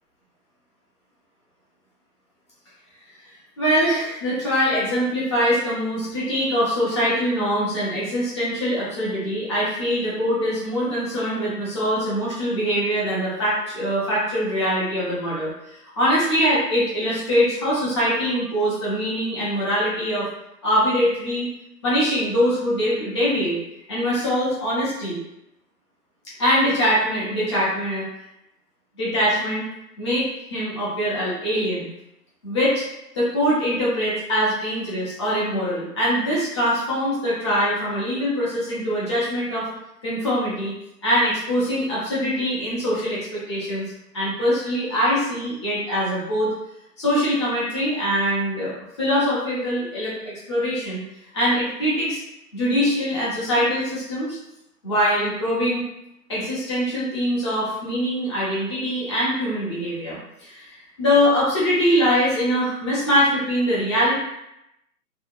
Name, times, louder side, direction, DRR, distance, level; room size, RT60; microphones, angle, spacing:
voice 1, 3.6-20.3 20.6-21.5 21.8-23.6 23.9-25.2 26.4-28.0 29.0-29.6 30.0-31.9 32.4-32.8 33.1-39.7 40.0-40.7 41.0-43.8 44.1-46.5 47.0-51.0 51.3-52.2 52.5-54.4 54.8-55.8 56.3-64.2, equal, 20° left, -8 dB, 0.5 m, -23 dB
2.7 x 2.2 x 2.5 m, 0.84 s
hypercardioid pair, 140°, 48 cm